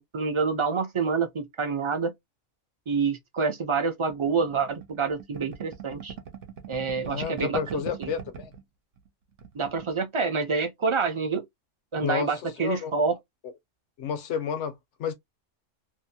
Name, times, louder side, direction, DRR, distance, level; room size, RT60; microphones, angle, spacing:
voice 1, 0.1-2.1 2.9-6.1 6.7-8.1 9.5-11.4 11.9-13.2, right 5 dB, 40° right, 0.5 m, -27 dB
sound 1, 4.1-8.6 9.0-9.1 9.3-9.9, right 8 dB, 75° right, 1.0 m, -41 dB
voice 2, 7.1-8.5 12.0-13.0 13.4-13.5 14.0-15.1, left 7 dB, 70° left, 0.9 m, -31 dB
2.7 x 2.5 x 2.7 m
omnidirectional pair, 1.3 m